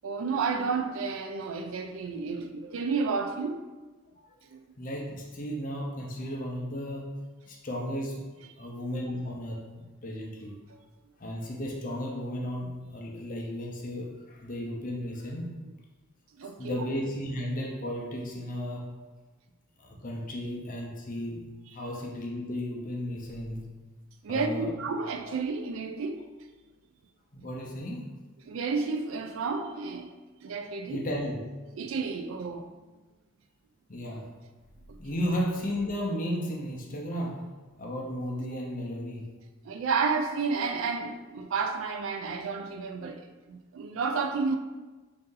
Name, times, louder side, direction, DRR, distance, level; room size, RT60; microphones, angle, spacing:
voice 1, 0.0-3.6 4.5-4.6 10.7-10.8 16.4-16.8 24.2-26.3 28.4-30.1 30.4-31.1 31.8-32.7 34.9-35.0 39.6-44.6, right 4 dB, 70° right, 0.4 m, -31 dB
voice 2, 4.8-7.2 7.5-8.2 8.6-10.6 11.2-15.5 16.6-18.9 19.8-21.4 21.7-23.7 24.3-24.7 27.3-28.1 30.9-31.4 33.9-34.3 35.0-37.4 37.8-39.3, equal, 40° left, 0.7 m, -34 dB
4.0 x 2.7 x 3.8 m
head